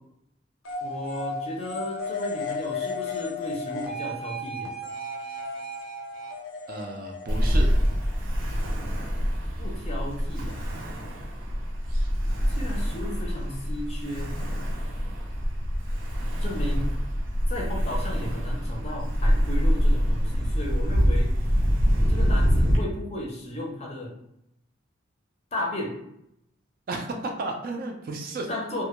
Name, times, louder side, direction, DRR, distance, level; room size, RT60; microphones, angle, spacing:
sound 1, 0.7-8.1, left 2 dB, 85° left, 0.5 m, -34 dB
voice 1, 0.8-4.7 9.6-10.6 12.5-14.4 16.4-16.9 17.5-21.3 22.1-24.1 25.5-26.0 28.5-28.8, left 1 dB, 30° left, -1 dB, 0.5 m, -34 dB
voice 2, 6.7-7.7 26.9-28.5, right 2 dB, 45° right, 2 dB, 0.3 m, -33 dB
Ocean, 7.3-22.8, equal, 90° right, 0.6 m, -25 dB
2.1 x 2.1 x 2.9 m, 0.79 s
head